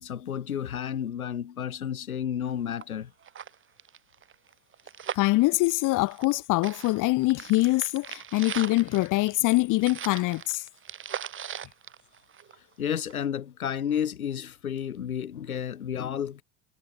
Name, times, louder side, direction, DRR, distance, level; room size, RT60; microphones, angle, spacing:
voice 1, 0.0-3.1 12.8-16.4, left 9 dB, 90° left, 1.5 m, -31 dB
sound 1, 2.5-2.6 2.8-2.9 3.2-6.4 6.6-12.7 13.1-13.2, right 8 dB, 30° right, 4.2 m, -39 dB
voice 2, 5.1-10.6, left 20 dB, 45° left, 2.7 m, -24 dB
hypercardioid pair, 90°, 42 cm